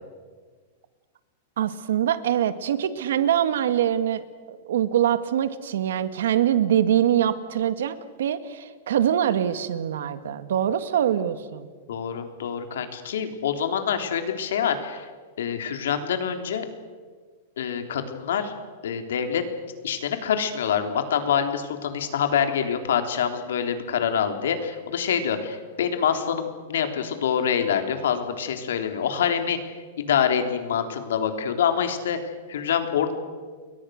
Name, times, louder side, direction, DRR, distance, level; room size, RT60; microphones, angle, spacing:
voice 1, 1.6-11.7, right 10 dB, 80° right, 12 dB, 1.8 m, -24 dB
voice 2, 11.9-15.1 15.4-16.7 17.6-18.5 18.8-19.4 19.8-29.6 30.0-33.1, left 8 dB, 80° left, 6 dB, 3.6 m, -26 dB
29.5 x 23.0 x 6.6 m, 1.5 s
supercardioid pair, 175°, 0 cm